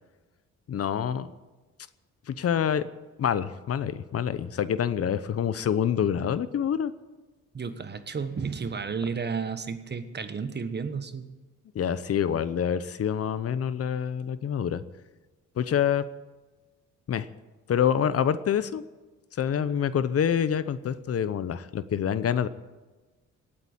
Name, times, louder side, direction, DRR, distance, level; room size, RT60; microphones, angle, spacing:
voice 1, 0.7-1.3 2.3-2.9 3.2-6.9 11.7-14.8 15.6-16.1 17.1-17.3 17.7-18.8 19.4-22.5, left 8 dB, 50° left, 14 dB, 0.8 m, -26 dB
voice 2, 7.5-11.3, right 5 dB, 35° right, 10 dB, 1.4 m, -32 dB
17.5 x 8.8 x 9.0 m, 1.2 s
cardioid pair, 90°, 30 cm